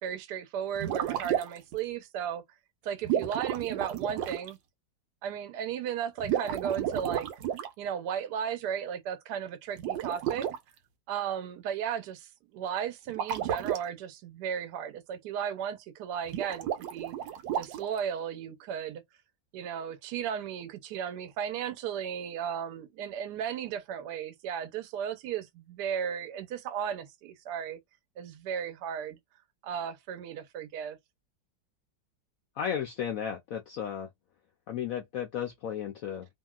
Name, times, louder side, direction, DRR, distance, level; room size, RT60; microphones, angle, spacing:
voice 1, 0.0-2.4 2.8-4.6 5.2-7.3 7.8-10.5 11.1-17.1 17.5-19.0 19.5-27.8 28.2-29.2 29.6-31.0, right 8 dB, 70° right, 1.1 m, -35 dB
sound 1, 0.7-1.7 3.0-4.5 6.2-7.7 9.8-10.6 13.1-13.8 16.3-18.0, right 10 dB, 90° right, 1.3 m, -32 dB
voice 2, 32.6-34.1 34.7-36.3, left 8 dB, 80° left, 0.7 m, -34 dB
2.9 x 2.7 x 2.3 m
omnidirectional pair, 2.0 m